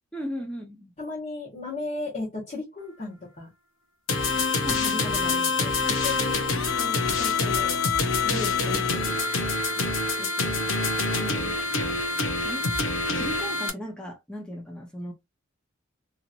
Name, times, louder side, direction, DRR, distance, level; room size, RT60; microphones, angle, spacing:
voice 1, 0.1-0.9 4.6-5.3 11.1-11.6 12.4-12.7 13.1-15.1, equal, 5° left, 0.8 m, -37 dB
voice 2, 1.0-3.5 4.8-7.8 8.2-9.9 10.2-10.7, left 2 dB, 35° left, 1.3 m, -37 dB
sound 1, 4.1-13.7, left 3 dB, 75° left, 0.7 m, -26 dB
2.9 x 2.9 x 2.5 m
head